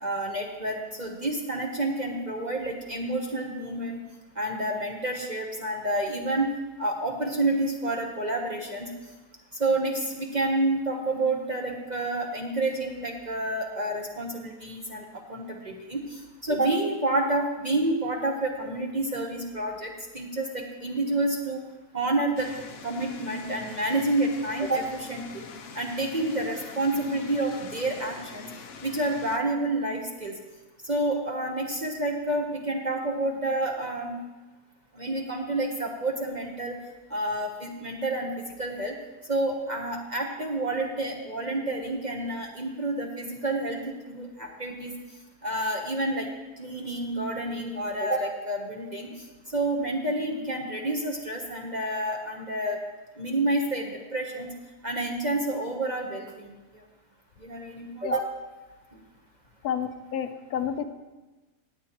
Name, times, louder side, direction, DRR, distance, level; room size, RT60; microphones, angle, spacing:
voice 1, 0.0-4.0 4.4-6.5 6.8-8.9 9.6-15.0 15.3-21.6 21.9-22.5 22.8-25.5 25.7-28.5 28.8-30.4 30.8-34.2 34.9-36.8 37.1-38.3 38.6-38.9 39.3-44.9 45.4-46.3 46.6-49.1 49.5-52.8 53.2-54.5 54.8-56.5 57.4-58.2, right 2 dB, 35° right, 0 dB, 0.9 m, -29 dB
sound 1, 22.4-29.4, left 5 dB, 55° left, 0.7 m, -44 dB
voice 2, 59.6-60.8, left 8 dB, 75° left, 8 dB, 1.1 m, -30 dB
17.0 x 8.6 x 3.0 m, 1.2 s
omnidirectional pair, 1.7 m